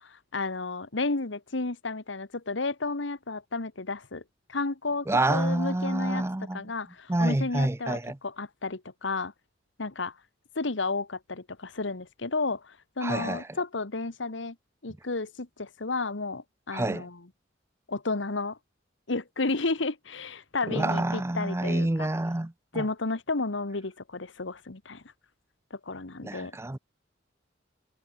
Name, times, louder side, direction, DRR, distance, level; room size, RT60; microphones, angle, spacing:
voice 1, 0.0-4.2 4.5-6.2 6.5-8.0 8.2-9.3 9.8-10.1 10.5-14.5 14.8-17.2 17.9-18.6 19.1-22.1 22.7-25.0 25.7-26.6, left 3 dB, 80° left, 1.5 m, -32 dB
voice 2, 5.1-6.7 7.1-8.2 13.0-13.5 16.7-17.1 20.7-22.9 26.2-26.8, right 1 dB, 15° right, 0.6 m, -28 dB
head